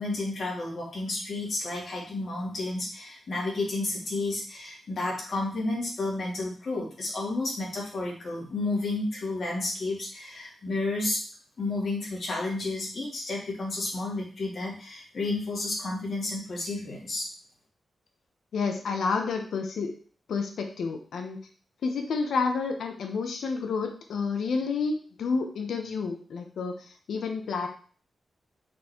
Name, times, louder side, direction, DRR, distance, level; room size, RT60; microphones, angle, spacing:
voice 1, 0.0-11.2 11.6-17.3, left 2 dB, 55° left, -3 dB, 2.9 m, -31 dB
voice 2, 18.5-19.9 20.3-21.4 21.8-27.7, left 4 dB, 85° left, 4 dB, 1.0 m, -30 dB
6.1 x 4.5 x 4.5 m, 0.42 s
wide cardioid pair, 120°, 0 cm